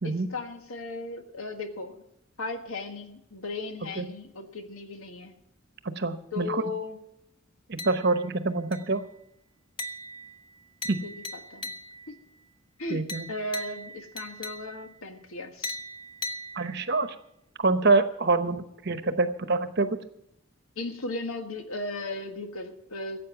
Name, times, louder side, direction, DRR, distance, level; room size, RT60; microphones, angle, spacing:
voice 1, 0.0-2.0 2.4-5.3 6.3-7.0 11.0-11.2 11.5-11.7 12.1-12.2 12.8-15.8 20.8-23.3, left 2 dB, 80° left, 6 dB, 1.6 m, -36 dB
voice 2, 5.8-6.6 7.7-9.0 10.8-11.0 12.9-13.3 16.6-17.1 17.6-20.0, right 3 dB, 50° right, 10 dB, 0.9 m, -26 dB
sound 1, 7.8-8.4 8.7-9.1 9.8-12.2 13.1-15.0 15.6-17.1, left 1 dB, 20° left, 0.6 m, -39 dB
14.5 x 8.5 x 7.1 m, 0.80 s
head